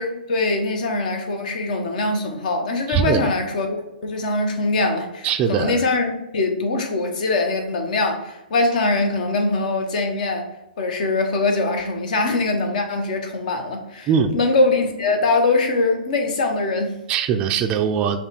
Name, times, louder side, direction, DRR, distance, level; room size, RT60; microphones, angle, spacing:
voice 1, 0.0-3.8 4.0-10.5 10.8-17.0, left 3 dB, 55° left, 4 dB, 0.9 m, -22 dB
voice 2, 2.9-3.3 5.2-5.8 14.1-14.3 17.1-18.2, right 7 dB, 25° right, 5 dB, 0.4 m, -21 dB
5.4 x 2.3 x 4.3 m, 0.93 s
hypercardioid pair, 130°, 5 cm